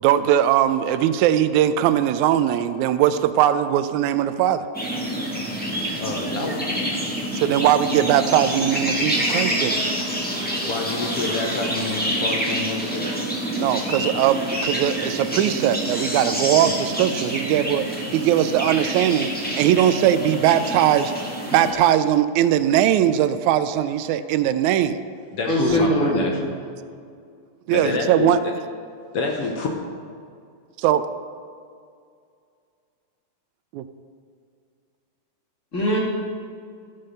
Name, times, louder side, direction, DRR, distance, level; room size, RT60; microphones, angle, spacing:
voice 1, 0.0-4.6 7.3-9.8 13.5-21.1 21.5-25.0 27.7-28.4 30.8-31.1 33.7-33.8, right 11 dB, 85° right, 12 dB, 1.9 m, -20 dB
sound 1, 4.7-21.7, equal, 5° left, 0.8 m, -27 dB
voice 2, 6.0-6.7 10.6-13.1 25.3-26.5 27.7-28.3 29.1-29.7, left 3 dB, 65° left, 1 dB, 1.7 m, -27 dB
voice 3, 25.5-26.4 35.7-36.0, equal, 30° left, -4 dB, 1.8 m, -21 dB
13.5 x 5.5 x 6.5 m, 2.3 s
omnidirectional pair, 3.3 m